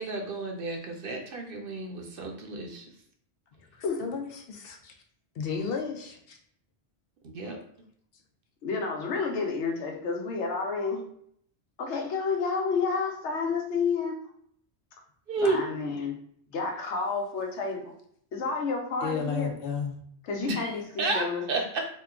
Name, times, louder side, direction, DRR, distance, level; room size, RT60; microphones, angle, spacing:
voice 1, 0.0-2.8 7.2-7.6 15.3-15.6 20.4-20.7 21.0-21.9, right 3 dB, 60° right, 2 dB, 0.7 m, -31 dB
voice 2, 3.8-4.9 5.4-6.4 19.0-20.0, left 5 dB, 65° left, 2 dB, 0.7 m, -33 dB
voice 3, 8.6-11.0 11.8-14.2 15.4-16.1 16.5-17.9 18.3-19.5 20.2-21.6, left 4 dB, 85° left, 2 dB, 1.0 m, -30 dB
2.9 x 2.2 x 3.6 m, 0.66 s
omnidirectional pair, 1.1 m